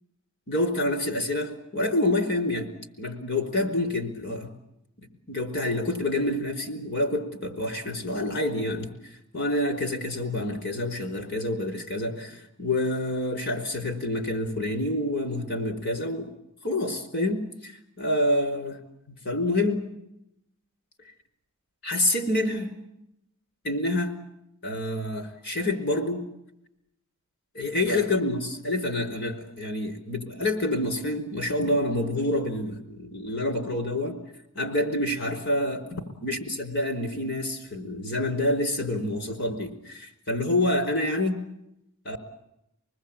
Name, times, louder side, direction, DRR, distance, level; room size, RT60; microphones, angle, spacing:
voice 1, 0.5-2.7 3.0-4.5 5.3-8.9 9.3-16.3 16.6-17.7 18.0-18.8 19.2-19.8 21.8-22.7 23.6-24.1 24.6-26.2 27.5-34.2 34.5-41.4 42.0-42.2, left 1 dB, 55° left, 6 dB, 4.9 m, -27 dB
26.5 x 20.0 x 8.9 m, 0.82 s
head